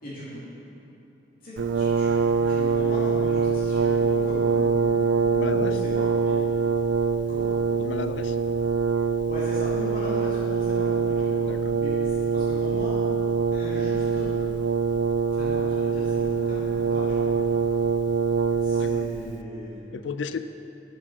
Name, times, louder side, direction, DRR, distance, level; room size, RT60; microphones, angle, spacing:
voice 1, 0.0-0.4 1.4-5.0 5.5-6.4 7.3-7.5 9.3-11.4 11.8-13.0 13.5-14.3 15.3-17.4 18.6-19.8, equal, 50° left, -9 dB, 2.4 m, -38 dB
Brass instrument, 1.6-19.4, right 5 dB, 70° right, 0.4 m, -24 dB
voice 2, 5.3-5.8 7.8-8.4 11.4-11.8 18.8-19.1 19.9-20.4, left 5 dB, 75° left, 11 dB, 0.4 m, -34 dB
10.0 x 6.4 x 6.2 m, 2.8 s
head